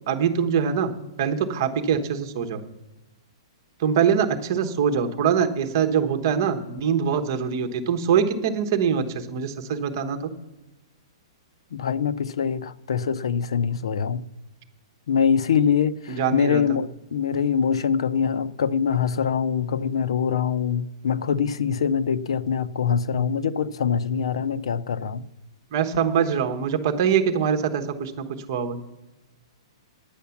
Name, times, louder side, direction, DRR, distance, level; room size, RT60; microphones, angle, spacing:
voice 1, 0.1-0.9 1.2-2.6 3.8-10.3 16.1-16.6 25.7-28.1 28.5-28.8, right 7 dB, 35° right, 6 dB, 1.1 m, -23 dB
voice 2, 11.7-14.2 15.1-25.3, left 7 dB, 75° left, 14 dB, 0.6 m, -24 dB
9.9 x 9.2 x 7.1 m, 1.1 s
hypercardioid pair, 175°, 3 cm